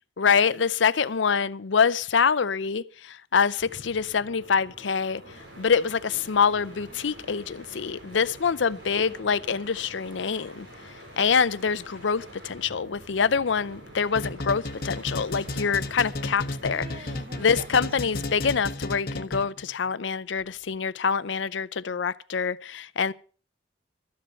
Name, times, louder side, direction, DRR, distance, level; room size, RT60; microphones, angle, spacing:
voice 1, 0.2-5.2 5.6-10.7 11.2-17.1 17.4-23.1, left 6 dB, 80° left, 0.6 m, -25 dB
sound 1, 3.5-18.5 20.3-20.8, equal, 65° right, 6.9 m, -47 dB
sound 2, 14.2-19.7, left 2 dB, 50° left, 1.2 m, -33 dB
voice 2, 16.7-17.7, right 2 dB, 30° right, 0.9 m, -44 dB
13.5 x 10.0 x 5.7 m
head